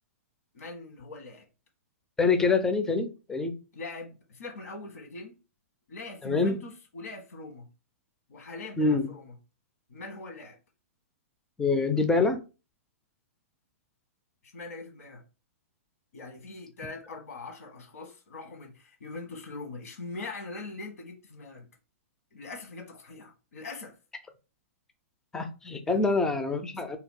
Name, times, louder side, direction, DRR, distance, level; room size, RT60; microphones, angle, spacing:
voice 1, 0.5-1.5 3.7-5.4 5.9-7.7 8.3-9.3 9.9-10.6 14.4-15.2 16.1-21.6 22.3-23.9 25.8-26.2, left 3 dB, 85° left, 1.2 m, -42 dB
voice 2, 2.2-3.5 6.2-6.6 8.8-9.1 11.6-12.4 25.3-27.0, left 4 dB, 5° left, 0.4 m, -25 dB
2.7 x 2.2 x 3.7 m
hypercardioid pair, 150°, 8 cm